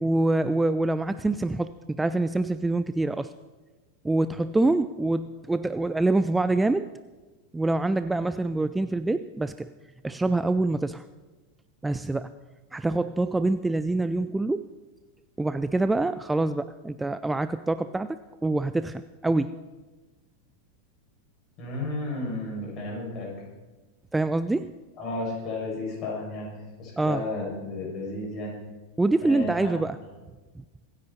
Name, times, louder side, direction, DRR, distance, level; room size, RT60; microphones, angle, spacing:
voice 1, 0.0-3.3 4.0-6.9 7.5-9.7 10.0-11.0 11.8-12.3 12.7-14.7 15.4-19.5 24.1-24.7 27.0-27.2 29.0-30.0, right 2 dB, 10° right, 12 dB, 0.4 m, -25 dB
voice 2, 21.6-23.3 25.0-26.5 26.8-28.5 29.2-29.7, left 2 dB, 35° left, -3 dB, 6.5 m, -32 dB
25.5 x 9.9 x 4.3 m, 1.2 s
figure-of-eight pair, 85°, 0 cm